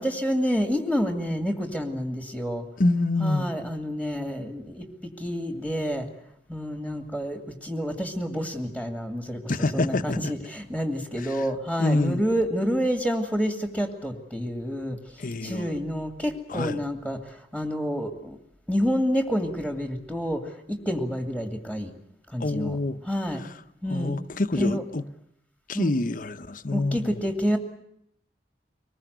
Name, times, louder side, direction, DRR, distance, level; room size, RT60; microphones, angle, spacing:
voice 1, 0.0-2.6 3.2-6.1 6.5-15.0 15.4-18.4 18.7-21.9 22.3-22.8 23.0-23.4 23.8-24.2 24.5-24.9 25.7-25.9 26.7-27.6, equal, 10° right, 2.2 m, -28 dB
voice 2, 2.8-3.5 9.5-10.3 11.2-11.4 11.8-12.2 15.2-15.7 16.5-16.8 22.4-23.0 23.4-23.5 23.9-25.0 25.7-27.2, left 2 dB, 50° left, 0.9 m, -26 dB
24.0 x 21.0 x 8.0 m
head